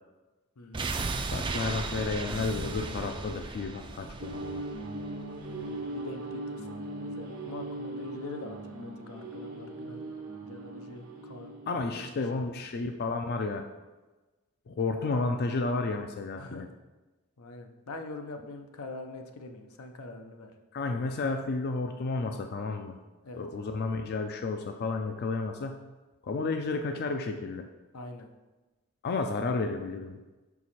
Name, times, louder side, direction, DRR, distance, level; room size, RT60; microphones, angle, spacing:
voice 1, 0.6-1.0 5.3-10.1 10.4-12.1 12.4-12.5 16.4-16.7 17.4-20.5 23.2-23.4 27.9-28.3, left 2 dB, 85° left, 4 dB, 0.7 m, -44 dB
sound 1, 0.7-5.7 6.0-6.1, right 3 dB, 20° right, 0.4 m, -35 dB
voice 2, 1.3-4.6 11.7-13.6 14.7-16.7 20.7-23.0 23.3-25.8 26.2-27.7 29.0-30.2, left 3 dB, 45° left, 5 dB, 0.4 m, -32 dB
sound 2, 4.2-12.4, right 2 dB, 85° right, 1.1 m, -39 dB
6.0 x 4.7 x 4.2 m, 1.2 s
head